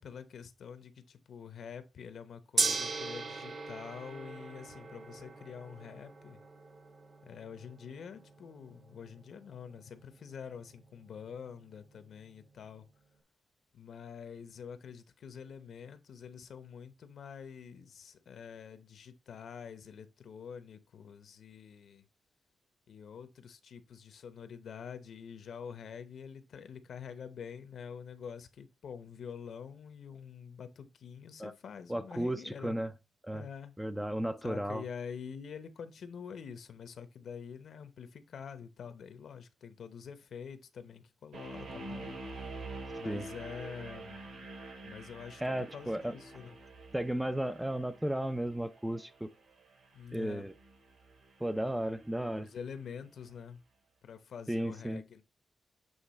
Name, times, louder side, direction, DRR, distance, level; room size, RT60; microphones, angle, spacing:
voice 1, 0.0-6.4 7.2-12.8 13.7-22.0 22.9-32.7 33.3-33.7 34.4-42.2 42.6-44.5 44.8-45.4 45.7-46.5 49.9-50.5 52.4-53.6 54.0-55.2, left 7 dB, 60° left, 0.8 m, -46 dB
Gong, 2.6-12.8, right 4 dB, 40° right, 0.8 m, -40 dB
voice 2, 31.9-32.9 33.2-33.5 33.8-34.8 43.0-43.2 45.4-46.1 46.9-49.3 50.1-50.5 51.4-52.5 54.5-55.0, right 1 dB, 5° right, 0.3 m, -34 dB
sound 1, 41.3-52.4, right 2 dB, 80° right, 4.2 m, -47 dB
8.1 x 3.1 x 4.2 m
wide cardioid pair, 160°, 0 cm